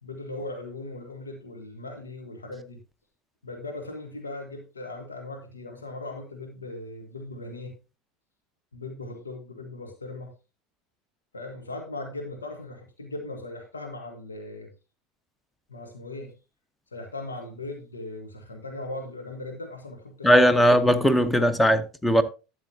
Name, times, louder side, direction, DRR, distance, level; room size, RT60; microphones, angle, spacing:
voice 1, 0.0-2.8 3.4-7.8 8.7-10.3 11.3-14.7 15.7-16.3 16.9-20.4, left 2 dB, 90° left, 1.4 m, -38 dB
voice 2, 20.2-22.2, equal, 5° left, 0.9 m, -19 dB
12.0 x 7.1 x 2.8 m
hypercardioid pair, 75°, 0 cm